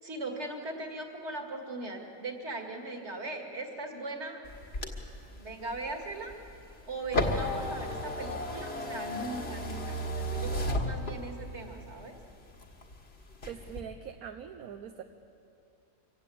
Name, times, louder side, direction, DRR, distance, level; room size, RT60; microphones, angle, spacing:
voice 1, 0.0-4.4 5.3-6.3 6.9-12.2, right 2 dB, 45° right, 3 dB, 2.5 m, -39 dB
sound 1, 4.4-11.5 12.0-13.0 13.3-13.8, left 1 dB, 40° left, 1.9 m, -34 dB
voice 2, 13.5-15.0, right 8 dB, 70° right, 6 dB, 1.3 m, -42 dB
25.0 x 16.5 x 8.5 m, 2.6 s
omnidirectional pair, 1.7 m